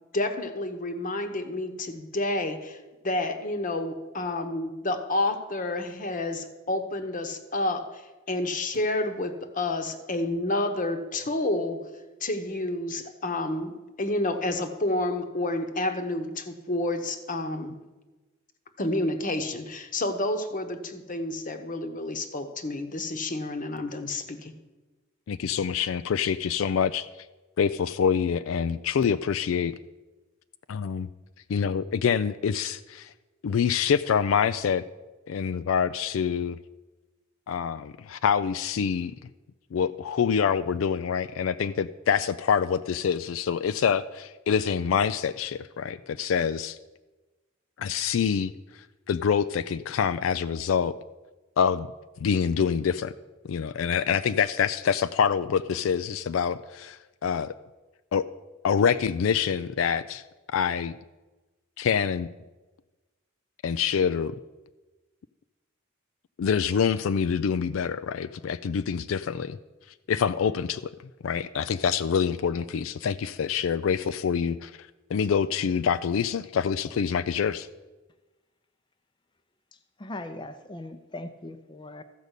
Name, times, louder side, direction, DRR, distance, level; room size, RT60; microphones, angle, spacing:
voice 1, 0.1-8.0 8.3-11.8 12.2-17.8 18.8-24.5, left 2 dB, 40° left, 8 dB, 1.0 m, -29 dB
voice 2, 25.3-27.1 27.6-29.7 30.7-31.1 31.5-33.1 33.4-34.8 35.3-36.6 37.5-39.1 39.7-46.8 47.8-51.0 51.6-51.9 52.2-53.1 53.4-57.5 58.1-58.3 58.6-60.2 60.5-60.9 61.8-62.3 63.6-64.3 66.4-69.6 70.1-70.9 71.2-77.7, left 7 dB, 80° left, 13 dB, 0.3 m, -26 dB
voice 3, 80.0-82.0, left 2 dB, 25° left, 7 dB, 0.5 m, -39 dB
14.0 x 5.3 x 8.1 m, 1.2 s
head